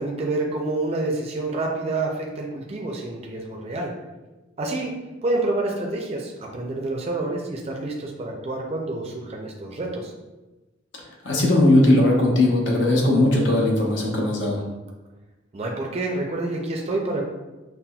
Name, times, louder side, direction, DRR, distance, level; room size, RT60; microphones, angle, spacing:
voice 1, 0.0-3.9 4.6-4.9 5.2-10.1 15.5-17.3, right 2 dB, 30° right, 0 dB, 0.4 m, -28 dB
voice 2, 11.2-14.6, left 1 dB, 65° left, -2 dB, 0.8 m, -18 dB
5.5 x 2.1 x 2.3 m, 1.1 s
head